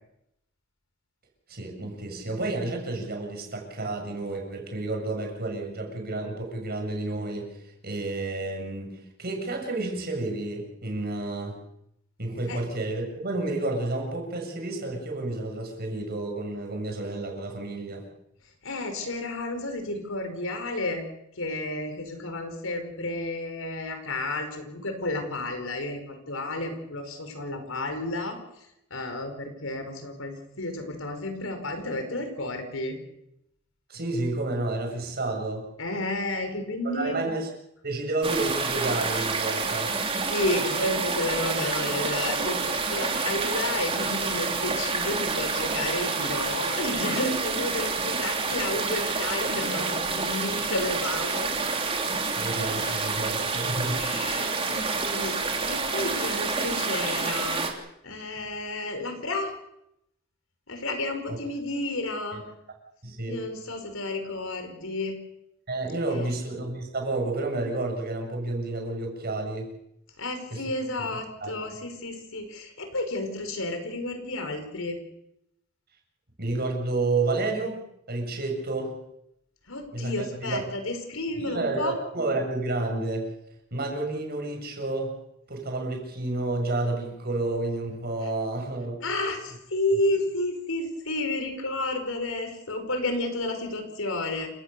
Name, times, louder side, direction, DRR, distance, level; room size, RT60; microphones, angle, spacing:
voice 1, 1.5-7.5 7.8-11.6 12.2-18.0 33.9-35.7 36.8-37.5 37.8-39.9 52.3-54.1 61.3-61.4 63.0-63.4 65.7-69.7 70.5-70.6 71.0-71.1 71.4-71.5 76.4-77.8 78.1-79.0 79.9-80.7 81.4-83.3 83.7-85.1 85.5-89.0, right 2 dB, 50° right, 2 dB, 6.9 m, -30 dB
voice 2, 18.6-21.0 21.4-28.4 28.9-32.9 35.8-37.1 40.3-51.5 54.0-57.6 58.0-59.5 60.7-62.4 63.3-65.2 66.1-66.3 70.2-75.0 79.7-81.9 89.0-94.5, left 2 dB, 80° left, 6 dB, 5.1 m, -31 dB
sound 1, 38.2-57.7, right 4 dB, 30° right, 3.3 m, -28 dB
29.0 x 17.5 x 6.9 m, 0.80 s
head